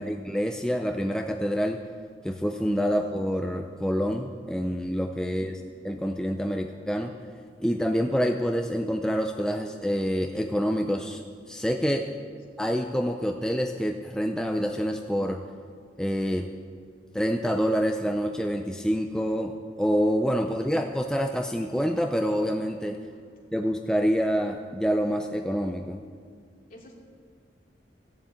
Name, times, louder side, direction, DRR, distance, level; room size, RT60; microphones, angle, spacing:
voice 1, 0.0-1.8 2.2-7.1 7.6-11.2 11.5-12.1 12.6-15.4 16.0-16.5 17.1-23.0 23.5-26.0, equal, 5° left, 3 dB, 0.5 m, -27 dB
voice 2, 5.1-5.6 20.4-20.7 22.9-23.3 26.7-26.9, left 1 dB, 50° left, -2 dB, 2.8 m, -53 dB
14.5 x 7.4 x 8.6 m, 2.1 s
head